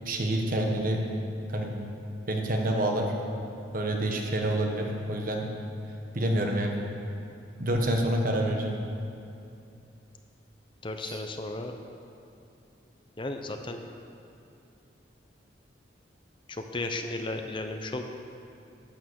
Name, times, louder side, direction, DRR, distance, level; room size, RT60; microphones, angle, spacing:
voice 1, 0.0-1.0 1.5-1.7 2.3-3.1 3.7-5.5 6.1-6.8 7.6-8.7 11.0-11.2, right 1 dB, 50° right, 2 dB, 1.4 m, -27 dB
voice 2, 10.8-11.7 13.2-13.8 16.5-18.0, left 2 dB, 25° left, 5 dB, 0.7 m, -34 dB
12.0 x 9.4 x 6.4 m, 2.6 s
head